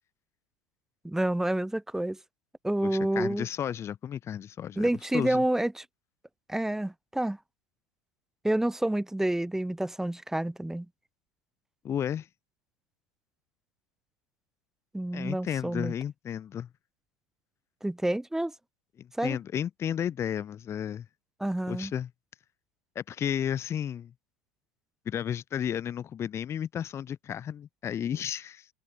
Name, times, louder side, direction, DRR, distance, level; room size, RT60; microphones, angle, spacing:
voice 1, 1.0-2.2 2.6-3.5 4.8-5.8 6.5-7.4 8.4-10.9 14.9-15.9 17.8-18.5 19.2-19.4 21.4-21.9, right 1 dB, 5° right, 2.0 m, -28 dB
voice 2, 2.8-5.4 11.8-12.3 15.1-16.7 19.0-21.1 21.7-22.1 23.0-24.1 25.1-28.7, left 9 dB, 30° left, 0.7 m, -33 dB
open air
hypercardioid pair, 105°, 10 cm